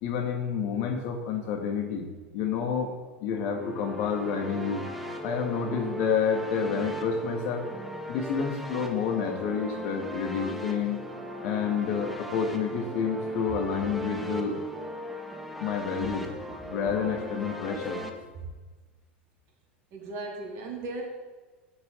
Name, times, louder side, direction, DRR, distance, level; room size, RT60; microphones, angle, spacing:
voice 1, 0.0-2.1 2.3-2.9 3.2-4.8 5.2-7.7 8.1-11.0 11.4-14.6 15.6-18.0, left 6 dB, 50° left, 2 dB, 2.2 m, -29 dB
sound 1, 3.3-18.1, right 1 dB, ahead, 1.4 m, -38 dB
voice 2, 19.9-21.1, right 2 dB, 50° right, 1 dB, 3.0 m, -36 dB
16.0 x 9.5 x 4.0 m, 1.3 s
figure-of-eight pair, 80°, 6 cm